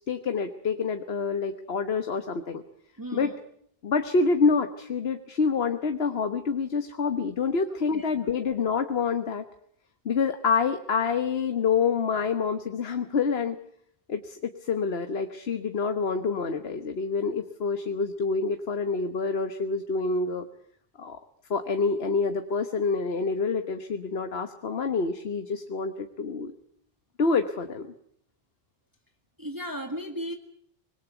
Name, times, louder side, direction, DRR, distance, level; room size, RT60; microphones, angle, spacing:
voice 1, 0.1-2.6 3.1-3.3 3.8-9.4 10.0-13.6 14.1-20.4 21.0-21.2 21.5-26.5 27.2-27.9, left 5 dB, 75° left, 8 dB, 1.4 m, -27 dB
voice 2, 3.0-3.3 7.7-8.0 29.4-30.3, equal, 20° right, 4 dB, 1.9 m, -35 dB
25.0 x 21.0 x 8.1 m, 0.67 s
omnidirectional pair, 1.0 m